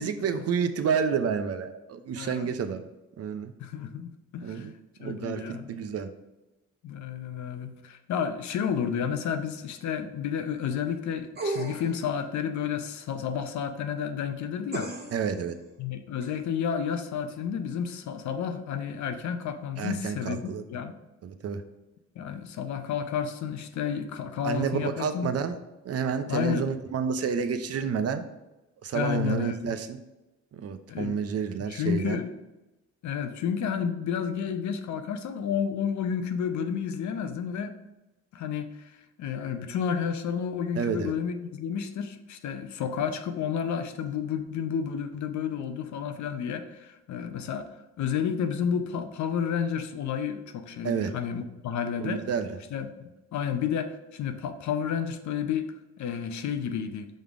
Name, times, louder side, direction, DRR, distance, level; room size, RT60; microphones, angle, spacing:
voice 1, 0.0-2.8 3.2-3.5 4.4-4.7 5.0-6.1 15.1-15.5 19.8-20.6 21.2-21.6 24.4-25.6 25.8-28.3 28.8-30.0 30.5-32.2 40.8-41.1 50.8-51.1 52.0-52.6, right 6 dB, 55° right, 9 dB, 0.6 m, -29 dB
voice 2, 2.2-2.5 3.6-4.7 5.0-5.8 6.8-14.9 15.8-20.9 22.2-25.3 26.3-26.7 28.9-29.7 30.9-31.1 31.6-32.3 33.0-37.7 38.3-38.8 39.2-47.7 48.0-52.2 52.7-55.7 56.0-57.1, left 7 dB, 70° left, 8 dB, 0.7 m, -31 dB
sound 1, 11.4-12.0 14.7-15.3 16.2-16.3, right 2 dB, 35° right, 1.3 m, -33 dB
5.3 x 3.8 x 4.7 m, 1.0 s
cardioid pair, 90°, 30 cm